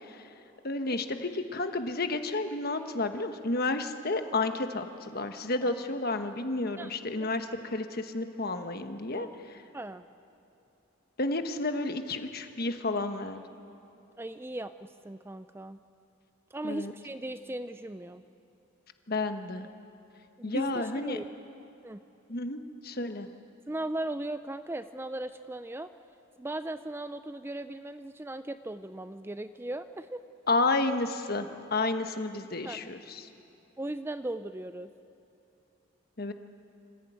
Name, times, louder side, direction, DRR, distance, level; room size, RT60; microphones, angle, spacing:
voice 1, 0.6-9.6 11.2-13.4 16.6-16.9 19.1-19.7 20.4-21.2 22.3-23.3 30.5-33.3 36.2-36.3, left 2 dB, 50° left, 7 dB, 1.3 m, -31 dB
voice 2, 9.7-10.1 14.2-15.8 16.5-18.2 20.4-21.3 21.8-22.0 23.7-25.9 26.4-30.2 32.6-32.8 33.8-34.9, right 1 dB, 10° right, 11 dB, 0.4 m, -37 dB
26.0 x 15.5 x 9.4 m, 2.9 s
head